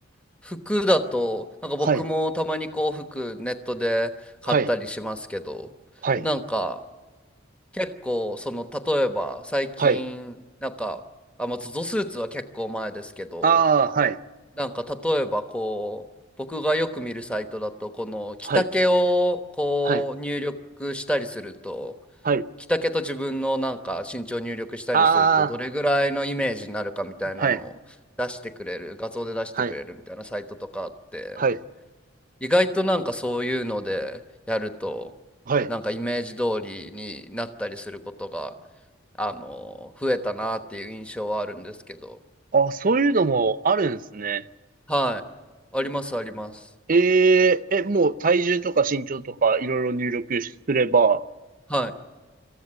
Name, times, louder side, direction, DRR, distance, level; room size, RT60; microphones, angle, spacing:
voice 1, 0.4-4.1 4.4-5.7 6.2-6.8 7.7-10.3 10.6-11.0 11.4-13.5 14.6-16.0 16.4-20.5 20.8-21.9 22.7-27.7 28.2-31.4 32.4-34.2 34.5-35.1 35.7-38.5 39.2-42.2 44.9-45.2 45.7-46.6 51.7-51.9, equal, 5° left, 1.1 m, -27 dB
voice 2, 13.4-14.2 18.4-18.7 19.8-20.0 22.2-22.4 24.9-25.5 27.4-27.6 29.5-29.7 31.4-31.6 35.5-35.7 42.5-44.4 46.9-51.2, right 5 dB, 45° right, 0.6 m, -21 dB
26.5 x 14.5 x 9.8 m
head